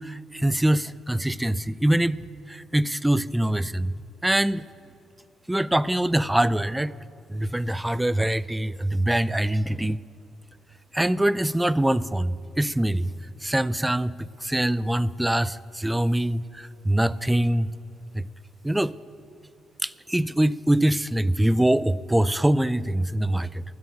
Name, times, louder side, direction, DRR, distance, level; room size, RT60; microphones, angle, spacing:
voice 1, 0.0-2.2 2.5-3.9 4.2-4.6 5.5-6.9 7.3-10.0 10.9-13.1 13.4-17.7 18.1-18.3 18.6-19.0 19.8-23.6, right 1 dB, 10° right, 19 dB, 0.3 m, -24 dB
10.0 x 9.6 x 9.1 m, 2.7 s
cardioid pair, 90°, 0 cm